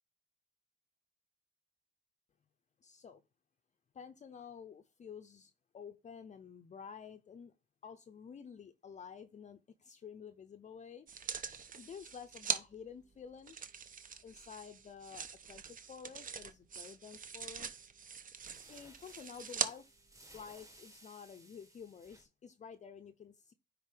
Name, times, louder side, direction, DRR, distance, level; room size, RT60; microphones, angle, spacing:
voice 1, 2.8-3.2 3.9-7.5 7.8-11.1 11.8-13.6 14.2-17.7 18.7-19.9 20.3-23.5, left 7 dB, 35° left, 0.6 m, -51 dB
sound 1, 11.1-12.6 13.5-19.7 20.4-20.5, right 6 dB, 45° right, 0.8 m, -42 dB
sound 2, 17.3-17.5 18.4-22.2, right 1 dB, 15° right, 1.6 m, -60 dB
9.7 x 4.1 x 3.4 m
cardioid pair, 90°, 20 cm